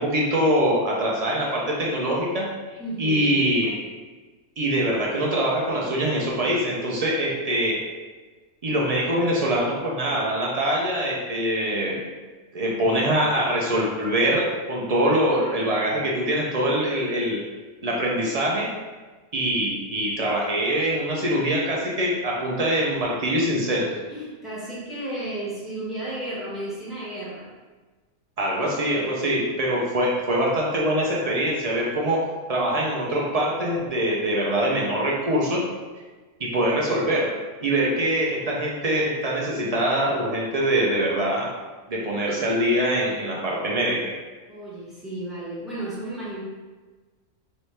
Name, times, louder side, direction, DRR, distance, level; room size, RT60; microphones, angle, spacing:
voice 1, 0.0-2.5 3.0-3.7 4.6-7.8 8.6-12.0 12.5-17.4 17.8-18.7 19.3-23.9 28.4-32.2 32.5-35.6 36.4-41.5 41.9-44.1, right 1 dB, 55° right, -3 dB, 0.4 m, -23 dB
voice 2, 2.8-3.4 24.1-27.5 44.5-46.4, right 1 dB, ahead, -9 dB, 1.1 m, -33 dB
3.1 x 2.7 x 3.2 m, 1.3 s
omnidirectional pair, 1.3 m